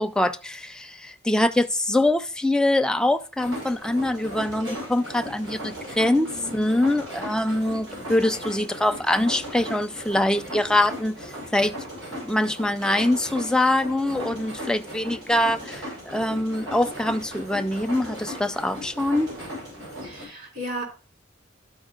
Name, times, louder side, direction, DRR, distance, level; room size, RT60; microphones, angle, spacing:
voice 1, 0.0-11.7 12.1-19.3, left 1 dB, 5° left, 0.4 m, -24 dB
sound 1, 3.4-20.3, equal, 75° right, 5.4 m, -37 dB
voice 2, 6.1-6.6 14.0-14.5 20.0-20.8, equal, 50° right, 3.6 m, -36 dB
12.0 x 4.9 x 3.7 m
head